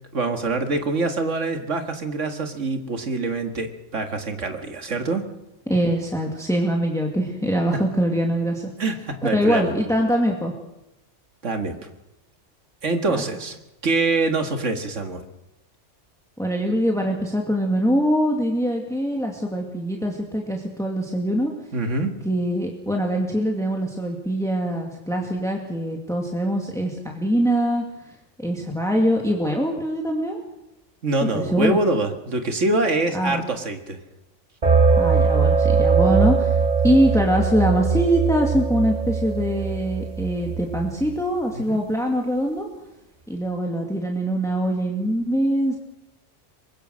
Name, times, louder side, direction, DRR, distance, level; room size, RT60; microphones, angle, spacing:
voice 1, 0.1-5.2 8.8-9.7 11.4-11.8 12.8-13.6 13.8-15.3 21.7-22.1 31.0-34.0 41.5-41.8, right 3 dB, 80° right, 6 dB, 2.2 m, -24 dB
voice 2, 5.7-8.7 9.2-10.5 13.1-13.3 16.4-21.5 22.2-30.4 31.3-31.8 33.1-33.4 35.0-42.7 43.3-45.8, equal, 5° left, 1 dB, 2.3 m, -23 dB
sound 1, 34.6-41.2, right 5 dB, 35° right, 2.0 m, -21 dB
24.5 x 20.5 x 6.4 m, 0.90 s
omnidirectional pair, 1.2 m